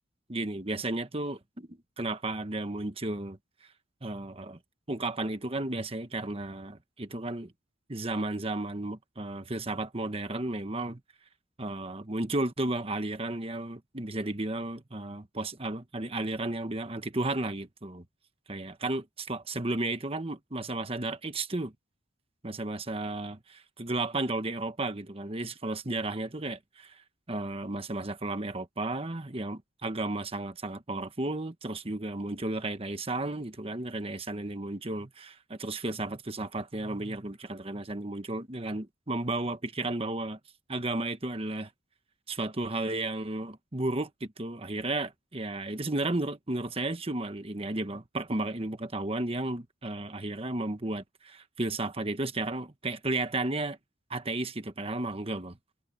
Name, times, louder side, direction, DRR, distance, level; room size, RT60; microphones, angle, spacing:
voice 1, 0.3-3.4 4.0-4.6 4.9-7.5 7.9-11.0 11.6-18.0 18.5-21.7 22.4-27.0 27.3-40.4 40.7-41.7 42.3-53.8 54.1-55.6, right 2 dB, 30° right, 1.3 m, -33 dB
head